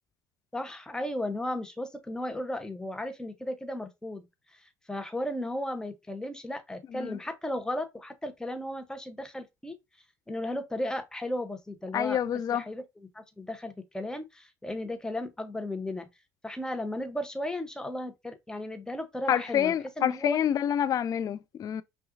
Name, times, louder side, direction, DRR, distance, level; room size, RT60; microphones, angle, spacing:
voice 1, 0.5-4.2 4.5-9.8 10.3-12.2 12.5-12.8 13.1-16.1 16.4-20.4, left 1 dB, 5° left, 0.8 m, -35 dB
voice 2, 11.9-12.6 19.3-21.8, left 9 dB, 35° left, 0.3 m, -27 dB
5.6 x 2.3 x 2.6 m
figure-of-eight pair, 55°, 10 cm